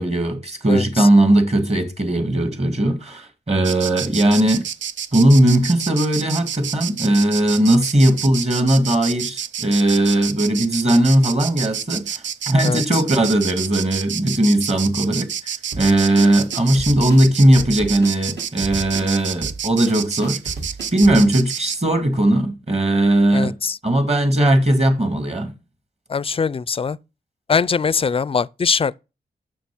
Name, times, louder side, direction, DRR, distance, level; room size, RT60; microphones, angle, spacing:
voice 1, 0.0-4.7 5.1-15.3 15.8-20.4 20.9-23.6 23.8-25.5, right 1 dB, 35° right, 2.1 m, -18 dB
voice 2, 0.7-1.1 12.6-13.0 23.3-23.8 26.1-27.0 27.5-29.0, left 5 dB, 30° left, 0.4 m, -22 dB
Insect, 3.6-21.8, right 8 dB, 85° right, 0.5 m, -29 dB
sound 1, 15.7-21.3, right 3 dB, 65° right, 2.4 m, -33 dB
6.9 x 6.1 x 6.1 m
cardioid pair, 60°, 19 cm